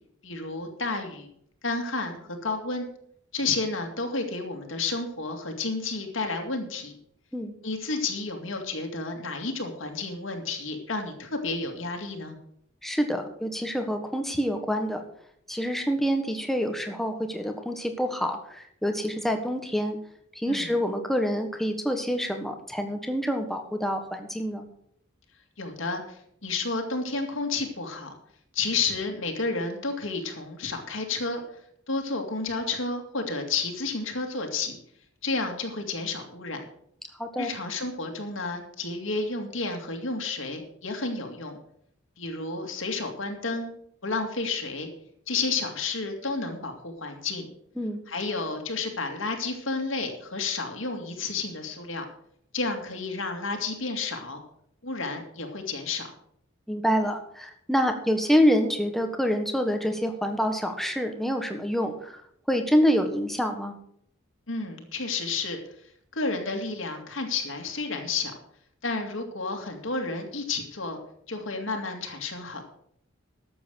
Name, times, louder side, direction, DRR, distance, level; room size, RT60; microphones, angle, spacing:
voice 1, 0.2-1.3 1.6-2.9 3.3-7.0 7.6-12.4 20.5-20.7 25.6-28.1 28.5-31.4 31.9-34.8 35.2-36.6 37.4-41.6 42.2-43.7 44.0-44.9 45.3-47.5 48.1-52.1 52.5-54.4 54.8-56.1 64.5-65.6 66.1-68.3 68.8-71.0 71.3-72.6, left 3 dB, 70° left, 3 dB, 2.2 m, -31 dB
voice 2, 12.8-15.0 15.5-20.0 20.3-24.7 37.2-37.5 47.8-48.0 56.7-62.2 62.5-63.7, equal, ahead, 5 dB, 1.5 m, -26 dB
12.5 x 7.8 x 6.4 m, 0.69 s
head